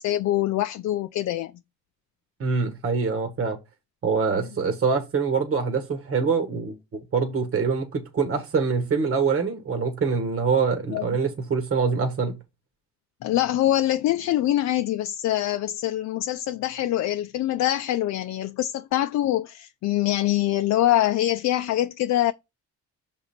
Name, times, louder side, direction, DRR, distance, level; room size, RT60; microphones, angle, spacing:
voice 1, 0.0-1.5 10.9-11.0 13.2-22.3, left 13 dB, 65° left, 0.4 m, -24 dB
voice 2, 2.4-3.6 4.0-12.3, right 5 dB, 45° right, 1.4 m, -24 dB
5.8 x 3.8 x 4.3 m
cardioid pair, 90°, 30 cm